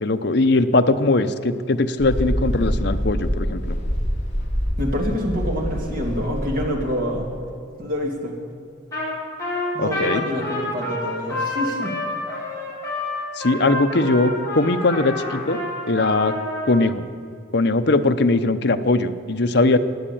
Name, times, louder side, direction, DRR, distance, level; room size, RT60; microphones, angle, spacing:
voice 1, 0.0-3.8 9.8-10.3 13.4-15.6 15.9-16.3 16.7-17.1 17.5-19.8, left 2 dB, 55° left, 8 dB, 0.8 m, -20 dB
Mechanical fan, 2.0-7.4, equal, 35° left, 2.6 m, -26 dB
voice 2, 4.8-7.3 7.8-8.3 9.7-11.9, equal, 45° right, 1 dB, 2.6 m, -26 dB
Trumpet, 8.9-9.1 9.4-16.8, left 1 dB, 15° left, 4.8 m, -28 dB
16.5 x 10.0 x 8.7 m, 2.4 s
head